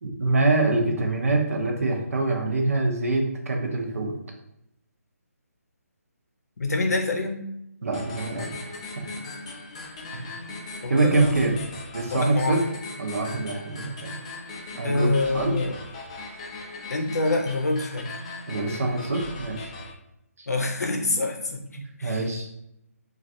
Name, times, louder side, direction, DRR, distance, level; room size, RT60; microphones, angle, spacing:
voice 1, 0.0-4.1 7.8-8.5 9.0-9.1 10.1-10.2 10.9-11.6 11.9-12.6 13.0-14.2 14.8-15.6 18.5-19.7 20.4-20.5 22.0-22.5, right 2 dB, 60° right, 2 dB, 0.6 m, -25 dB
voice 2, 6.6-7.4 10.8-11.5 12.1-12.6 14.8-15.8 16.9-18.2 20.5-21.6 22.0-22.2, left 2 dB, 80° left, 3 dB, 0.6 m, -26 dB
sound 1, 7.9-19.9, left 3 dB, 20° left, 0.3 m, -39 dB
3.1 x 2.4 x 2.6 m, 0.81 s
figure-of-eight pair, 160°, 9 cm